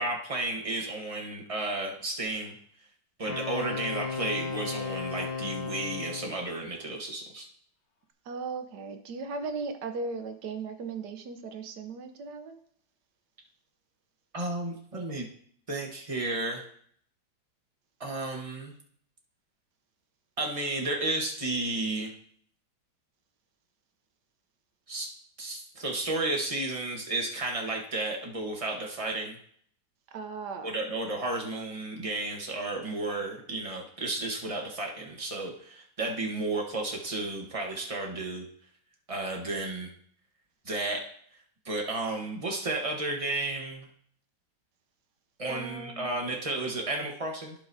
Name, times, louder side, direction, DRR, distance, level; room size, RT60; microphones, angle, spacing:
voice 1, 0.0-2.5 3.2-7.5 14.3-15.3 15.7-16.6 18.0-18.7 20.4-22.1 24.9-25.1 25.4-29.4 30.6-38.5 39.1-39.9 40.6-41.0 41.6-43.9 45.4-47.5, right 2 dB, 20° right, 0 dB, 1.0 m, -32 dB
Wind instrument woodwind instrument, 3.3-6.4, left 5 dB, 65° left, 1.6 m, -35 dB
voice 2, 8.3-12.6 30.1-30.7 45.5-46.1, right 4 dB, 65° right, 7 dB, 1.3 m, -37 dB
15.0 x 5.0 x 2.7 m, 0.62 s
omnidirectional pair, 2.2 m